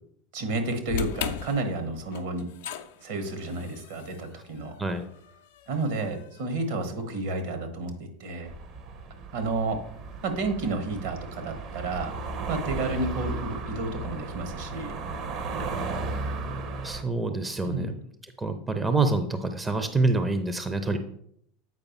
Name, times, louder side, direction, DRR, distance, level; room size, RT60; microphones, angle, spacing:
voice 1, 0.3-2.5 3.0-4.7 5.7-8.5 9.3-9.8 10.2-12.1 12.5-14.9 17.6-17.9, right 2 dB, 60° right, 5 dB, 1.4 m, -31 dB
sound 1, 0.9-7.1, left 9 dB, 60° left, 0.5 m, -39 dB
sound 2, 8.4-17.0, right 3 dB, 45° right, 0.9 m, -35 dB
voice 2, 16.8-17.9 18.4-21.0, right 3 dB, 15° right, 8 dB, 0.6 m, -26 dB
8.1 x 5.0 x 3.1 m, 0.68 s
figure-of-eight pair, 75°, 0 cm